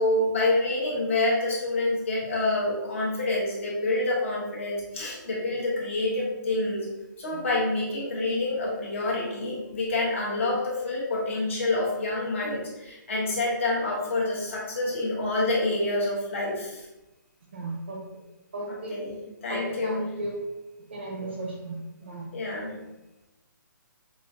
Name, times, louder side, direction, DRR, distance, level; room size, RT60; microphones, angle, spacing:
voice 1, 0.0-6.9 7.2-16.9 18.9-20.1 22.3-22.7, left 2 dB, 40° left, -5 dB, 1.2 m, -27 dB
voice 2, 17.5-18.0 18.5-19.0 19.5-20.4 20.9-22.3, right 2 dB, 35° right, -1 dB, 0.8 m, -35 dB
5.5 x 2.6 x 2.7 m, 1.0 s
hypercardioid pair, 180°, 11 cm